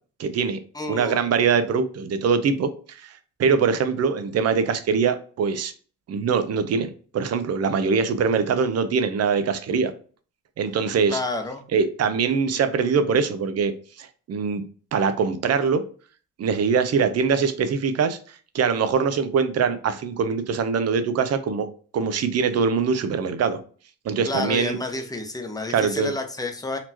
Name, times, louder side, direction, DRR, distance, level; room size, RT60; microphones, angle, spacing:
voice 1, 0.2-0.6 0.9-3.1 3.4-5.7 6.1-9.9 10.6-11.2 11.7-13.7 14.0-14.6 14.9-15.8 16.4-18.2 18.5-21.7 21.9-23.6 24.0-24.8 25.7-26.1, right 5 dB, 55° right, 10 dB, 0.7 m, -23 dB
voice 2, 0.7-1.2 11.1-11.6 24.2-26.8, left 2 dB, 10° left, 5 dB, 0.8 m, -30 dB
4.2 x 3.0 x 2.7 m, 0.41 s
cardioid pair, 90°, 30 cm